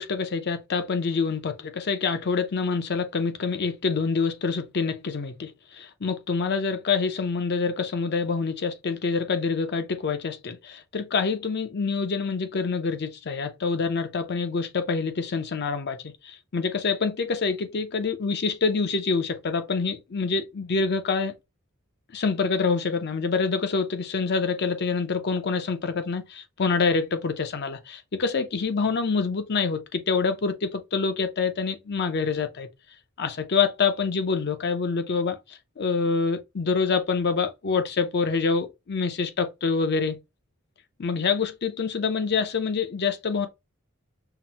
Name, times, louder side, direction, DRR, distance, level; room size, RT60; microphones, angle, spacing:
voice 1, 0.0-21.4 22.1-32.7 33.2-40.2 41.0-43.5, left 5 dB, 50° left, 0.6 m, -26 dB
5.7 x 2.1 x 2.8 m
head